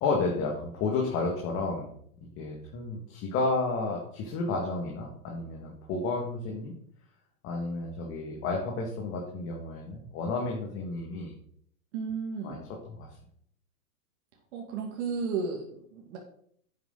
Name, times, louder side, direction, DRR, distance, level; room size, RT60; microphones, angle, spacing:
voice 1, 0.0-1.9 2.4-6.7 7.4-11.3 12.4-12.6 13.0-13.1, left 3 dB, 30° left, -1 dB, 1.8 m, -31 dB
voice 2, 11.9-12.6 14.5-16.2, right 5 dB, 45° right, 0 dB, 2.1 m, -33 dB
10.0 x 8.0 x 3.8 m, 0.64 s
hypercardioid pair, 130°, 47 cm